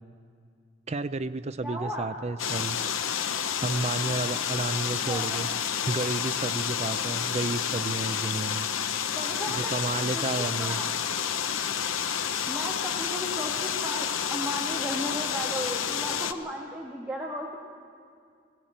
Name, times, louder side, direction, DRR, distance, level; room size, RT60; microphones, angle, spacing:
voice 1, 0.9-2.8 3.6-5.5 5.9-8.7 9.5-10.8, right 3 dB, 30° right, 13 dB, 0.5 m, -31 dB
voice 2, 1.6-2.1 5.0-5.4 9.1-10.9 12.5-17.6, equal, 5° right, -3 dB, 1.6 m, -35 dB
sound 1, 2.4-16.3, left 8 dB, 80° left, 0.8 m, -30 dB
19.5 x 16.0 x 8.8 m, 2.2 s
head